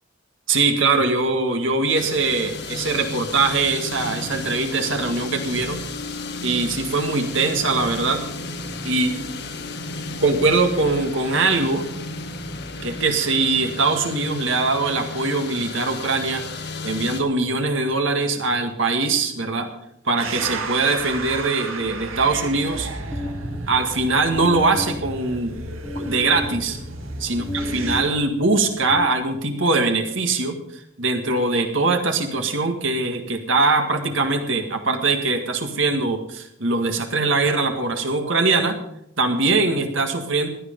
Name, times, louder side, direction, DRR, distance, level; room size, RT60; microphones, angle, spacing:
voice 1, 0.5-5.8 6.4-8.2 8.8-9.1 10.2-11.9 12.8-16.4 16.8-19.7 20.1-22.9 23.7-25.5 26.0-26.8 27.2-30.6 31.0-38.8 39.2-40.5, right 3 dB, 70° right, 4 dB, 1.8 m, -22 dB
sound 1, 2.0-17.2, left 3 dB, 55° left, 1.4 m, -33 dB
sound 2, 20.2-28.0, right 3 dB, 85° right, 2.1 m, -33 dB
sound 3, 23.1-29.7, left 1 dB, 15° left, 1.1 m, -34 dB
16.0 x 11.0 x 5.3 m, 0.78 s
head